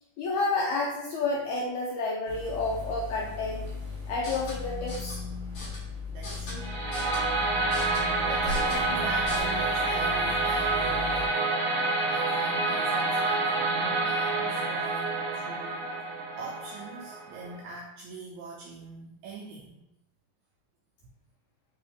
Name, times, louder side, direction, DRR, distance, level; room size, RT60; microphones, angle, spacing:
voice 1, 0.2-3.6 4.1-5.2, left 3 dB, 85° left, -3 dB, 1.7 m, -30 dB
sound 1, 2.2-11.3, left 4 dB, 40° right, 1.2 m, -39 dB
sound 2, 4.1-9.4, left 1 dB, 50° left, 2.2 m, -39 dB
voice 2, 6.1-6.8 7.4-7.5 8.2-11.5 12.1-15.8 16.3-19.8, right 3 dB, 85° right, -3 dB, 1.7 m, -42 dB
sound 3, 6.6-17.6, right 3 dB, 70° right, 1.7 m, -28 dB
5.4 x 3.0 x 3.3 m, 0.88 s
omnidirectional pair, 3.9 m